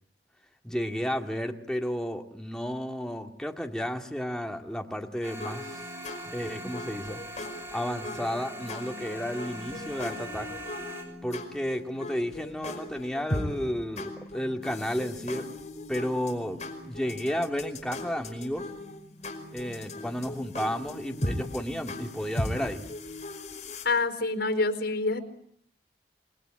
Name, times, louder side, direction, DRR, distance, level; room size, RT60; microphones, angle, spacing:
voice 1, 0.6-5.9 6.3-7.2 7.7-10.5 11.2-15.5 15.9-18.7 19.5-22.8, equal, 5° left, 3 dB, 2.1 m, -32 dB
sound 1, 5.2-11.0, equal, 15° right, 6.7 m, -41 dB
sound 2, 5.4-23.8, left 1 dB, 40° left, 5.3 m, -38 dB
voice 2, 23.8-25.2, left 3 dB, 85° left, 8 dB, 4.5 m, -26 dB
28.0 x 20.5 x 8.8 m, 0.67 s
head